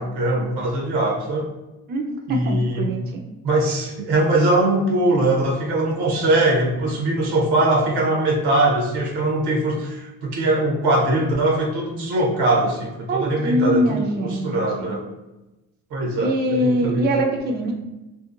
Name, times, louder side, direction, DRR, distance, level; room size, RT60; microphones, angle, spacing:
voice 1, 0.0-1.5 2.3-2.9 3.4-15.0 15.9-17.1, right 2 dB, 75° right, -1 dB, 0.8 m, -21 dB
voice 2, 1.9-3.3 13.1-15.0 16.2-17.7, equal, 25° right, 1 dB, 0.4 m, -23 dB
2.7 x 2.1 x 2.4 m, 1.0 s
supercardioid pair, 60°, 40 cm